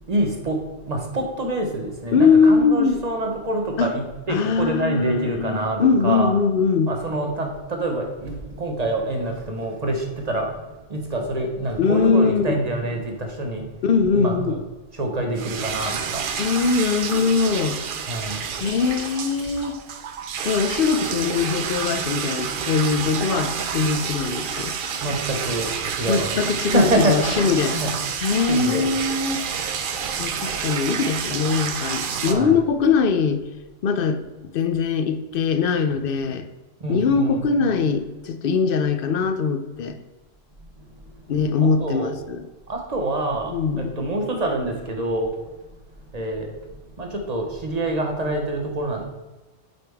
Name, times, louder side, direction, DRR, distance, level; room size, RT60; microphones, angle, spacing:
voice 1, 0.1-0.6 0.9-6.3 6.9-10.5 10.9-13.7 14.1-14.6 14.9-16.2 18.1-18.4 25.0-28.0 28.5-28.9 32.2-32.6 36.8-37.7 41.6-42.1 42.7-45.3 46.1-46.5 47.0-49.1, right 1 dB, 40° right, 2 dB, 1.2 m, -26 dB
voice 2, 2.1-3.0 3.8-3.9 4.3-6.9 11.8-12.6 13.8-14.6 16.4-17.8 18.6-19.8 20.4-24.7 26.1-27.8 28.2-29.4 30.2-33.4 33.8-34.2 34.5-36.5 36.9-40.0 41.3-42.4 43.5-43.9, left 5 dB, 60° left, 8 dB, 0.7 m, -21 dB
sound 1, 15.4-32.3, right 6 dB, 60° right, 0.7 m, -29 dB
8.1 x 5.1 x 3.5 m, 1.1 s
omnidirectional pair, 1.1 m